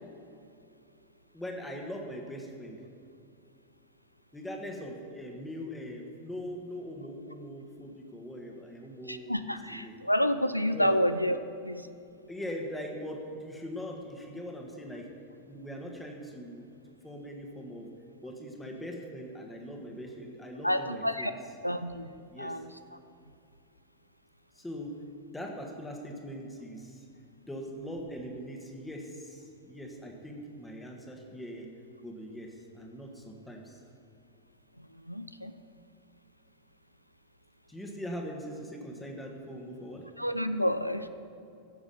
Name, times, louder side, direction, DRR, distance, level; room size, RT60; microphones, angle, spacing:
voice 1, 1.3-2.8 4.3-9.9 10.7-11.0 12.3-15.1 15.5-16.7 17.0-17.9 18.2-21.3 22.3-22.6 24.5-24.9 25.3-27.0 27.5-31.7 32.0-33.8 37.7-40.1, equal, 5° left, 1 dB, 1.6 m, -41 dB
voice 2, 9.1-11.4 11.6-11.9 20.6-21.3 21.6-22.1 22.4-22.7 35.1-35.5 40.2-41.1, equal, 90° left, 11 dB, 0.4 m, -29 dB
15.5 x 6.9 x 5.5 m, 2.6 s
figure-of-eight pair, 90°, 0 cm